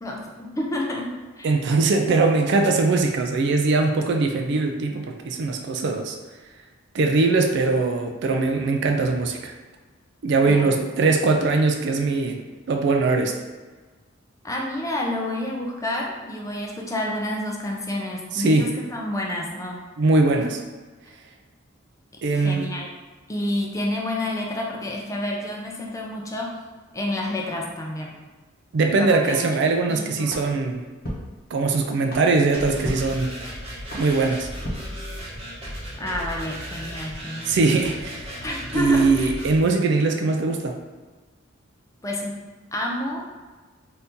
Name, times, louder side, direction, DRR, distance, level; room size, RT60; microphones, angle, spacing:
voice 1, 0.0-1.1 1.4-1.6 10.5-10.7 14.4-19.8 20.3-20.4 22.3-22.9 23.3-26.5 26.9-28.1 29.0-29.4 29.9-30.4 36.0-37.6 38.4-39.4 42.0-42.4 42.7-43.2, left 1 dB, 15° left, -1 dB, 0.4 m, -29 dB
voice 2, 1.4-6.2 6.9-9.5 10.2-13.3 18.3-18.7 20.0-20.5 22.2-22.7 28.7-30.8 31.5-33.4 33.9-34.5 37.5-38.3 38.7-40.8, right 3 dB, 60° right, 3 dB, 0.4 m, -21 dB
sound 1, 30.3-35.6, equal, 50° left, 0.9 m, -38 dB
sound 2, 32.5-39.6, equal, 30° right, 0.9 m, -35 dB
2.8 x 2.6 x 3.5 m, 1.3 s
head